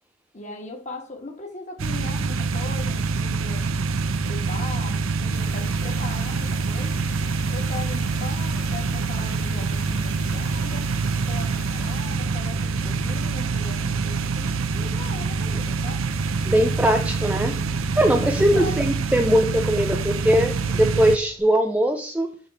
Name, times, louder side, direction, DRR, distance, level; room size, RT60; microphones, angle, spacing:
voice 1, 0.3-3.7 4.2-7.0 7.5-10.9 11.3-16.0 18.1-18.7, left 2 dB, 35° left, 1.7 m, -39 dB
sound 1, 1.8-21.2, right 4 dB, 80° right, 0.5 m, -25 dB
sound 2, 5.3-21.4, left 3 dB, 55° left, 1.5 m, -48 dB
voice 2, 16.4-17.7 18.0-22.4, equal, 5° right, 0.5 m, -21 dB
6.4 x 3.6 x 5.8 m
head